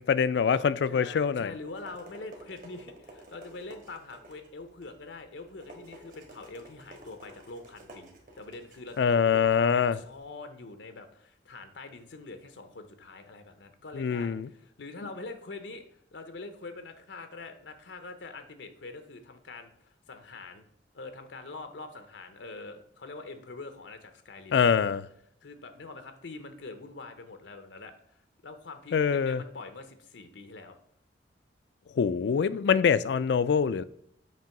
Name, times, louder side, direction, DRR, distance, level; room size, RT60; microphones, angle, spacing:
voice 1, 0.0-1.5 9.0-10.0 14.0-14.5 24.5-25.1 28.9-29.4 32.0-33.8, left 6 dB, 70° left, 0.3 m, -24 dB
voice 2, 0.9-20.6 20.9-24.9 25.4-30.8, left 3 dB, 90° left, 0.7 m, -44 dB
sound 1, 1.6-10.2, right 1 dB, 50° right, 1.4 m, -52 dB
7.4 x 3.0 x 5.8 m
head